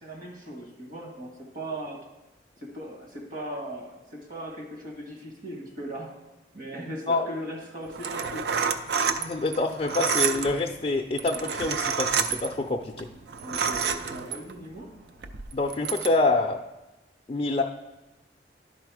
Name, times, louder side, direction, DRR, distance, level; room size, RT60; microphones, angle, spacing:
voice 1, 0.0-2.0 2.6-6.1 6.5-8.5 13.3-14.9, right 1 dB, 50° right, 0 dB, 1.6 m, -38 dB
sound 1, 7.9-14.6 15.2-16.1, right 6 dB, 70° right, 0.4 m, -29 dB
voice 2, 9.2-13.1 15.5-16.6 17.3-17.6, left 3 dB, 30° left, 2 dB, 0.4 m, -26 dB
11.0 x 4.1 x 4.8 m, 1.0 s
head